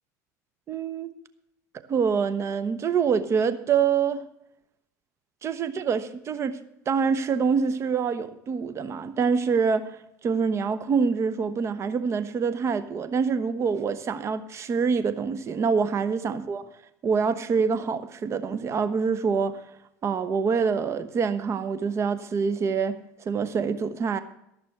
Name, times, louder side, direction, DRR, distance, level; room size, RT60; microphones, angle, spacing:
voice 1, 0.7-1.1 1.9-4.2 5.4-6.6 6.9-16.7 17.0-19.6 20.0-23.0 23.2-24.2, right 5 dB, 35° right, 13 dB, 1.1 m, -25 dB
14.5 x 6.1 x 7.8 m, 0.80 s
supercardioid pair, 105°, 8 cm